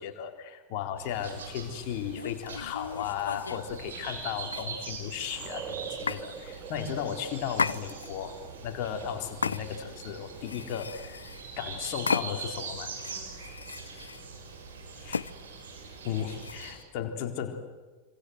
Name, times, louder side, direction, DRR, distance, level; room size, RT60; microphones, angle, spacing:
voice 1, 0.0-8.4 8.6-12.9 14.9-15.2 16.0-17.6, left 9 dB, 45° left, 5 dB, 3.9 m, -35 dB
sound 1, 1.0-16.7, right 4 dB, 65° right, 6.8 m, -42 dB
sound 2, 2.1-3.7 4.5-5.1 6.1-6.3 7.5-8.3 9.4-10.0 10.4-11.5 12.1-12.6 13.0-14.2 15.1-15.3 16.4-16.8, left 5 dB, 75° left, 0.8 m, -34 dB
sound 3, 3.1-14.2, right 7 dB, 25° right, 2.1 m, -48 dB
27.5 x 26.0 x 7.9 m, 1.3 s
figure-of-eight pair, 90°, 0 cm